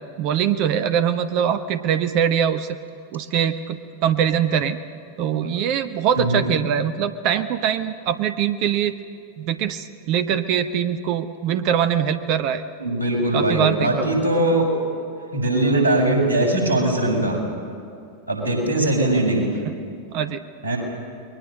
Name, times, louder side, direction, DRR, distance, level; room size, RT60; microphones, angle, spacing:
voice 1, 0.2-2.7 3.1-4.8 5.2-9.0 9.4-12.6 13.3-14.2 20.1-20.4, right 9 dB, 45° right, 10 dB, 0.9 m, -22 dB
voice 2, 6.2-6.5 12.8-14.7 15.3-17.4 18.3-19.5 20.6-20.8, right 1 dB, 90° left, 1 dB, 6.2 m, -21 dB
29.5 x 22.5 x 6.5 m, 2.5 s
figure-of-eight pair, 90°, 0 cm